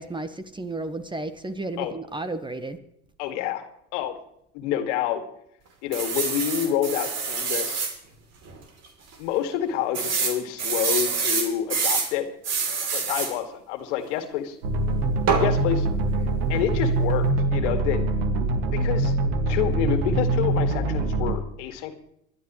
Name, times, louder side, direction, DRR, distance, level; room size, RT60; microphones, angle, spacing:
voice 1, 0.0-2.8 15.3-15.4, right 2 dB, 15° right, 11 dB, 1.1 m, -33 dB
voice 2, 3.2-3.7 3.9-4.2 4.5-5.2 5.8-7.9 9.2-12.3 12.9-14.6 15.4-15.9 16.5-18.0 18.7-19.2 19.5-21.9, left 10 dB, 75° left, 7 dB, 2.0 m, -28 dB
sound 1, 5.9-7.9 8.5-8.6 8.8-8.9 9.9-12.1 12.4-13.3 15.3-15.5, right 5 dB, 45° right, 3.1 m, -26 dB
sound 2, 14.6-21.4, right 2 dB, 70° right, 2.0 m, -24 dB
22.5 x 11.5 x 3.1 m, 0.75 s
hypercardioid pair, 90°, 36 cm